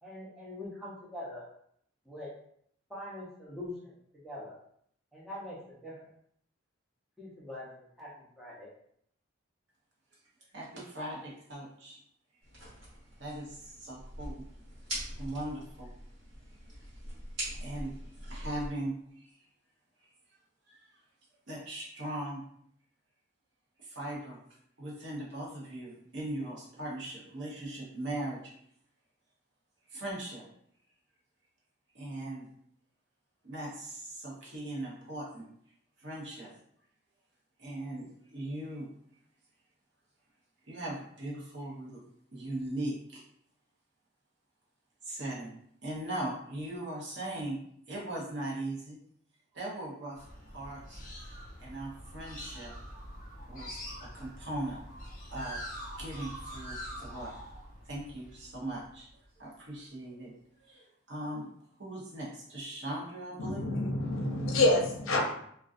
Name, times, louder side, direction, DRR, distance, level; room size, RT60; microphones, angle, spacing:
voice 1, 0.0-1.5 2.1-2.3 2.9-3.9 4.2-4.5 5.1-6.1 7.2-8.7, left 1 dB, ahead, -7 dB, 0.6 m, -43 dB
voice 2, 10.5-12.0 13.2-14.4 15.2-15.9 17.6-18.0 18.3-19.5 20.0-20.1 20.7-20.8 21.5-22.4 23.8-24.4 24.8-28.4 29.9-30.4 31.9-32.5 33.4-35.5 36.0-36.5 37.6-38.9 40.6-42.0 42.3-43.2 45.0-45.5 45.8-47.6 47.9-49.0 49.5-51.0 51.6-52.7 53.5-54.8 55.3-55.6 56.0-57.3 57.8-59.1 59.4-60.3 60.6-61.5 61.8-63.6, right 1 dB, 60° right, -4 dB, 0.8 m, -39 dB
sound 1, 12.4-18.7, equal, 85° right, 1.3 m, -43 dB
sound 2, 50.2-59.2, equal, 40° left, 0.5 m, -44 dB
voice 3, 63.4-65.2, left 2 dB, 85° left, 1 dB, 0.6 m, -27 dB
2.4 x 2.3 x 2.4 m, 0.67 s
head